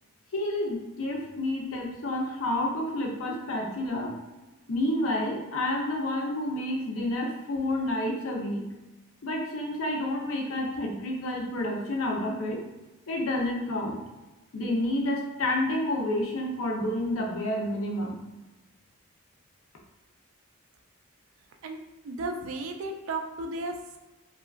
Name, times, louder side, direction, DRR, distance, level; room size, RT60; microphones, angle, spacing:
voice 1, 0.3-4.1 4.7-8.6 9.2-12.6 13.1-14.0 14.5-18.2, left 1 dB, 75° left, 0 dB, 0.5 m, -29 dB
voice 2, 22.0-24.0, right 2 dB, 75° right, 4 dB, 0.4 m, -34 dB
3.0 x 2.3 x 2.3 m, 1.1 s
head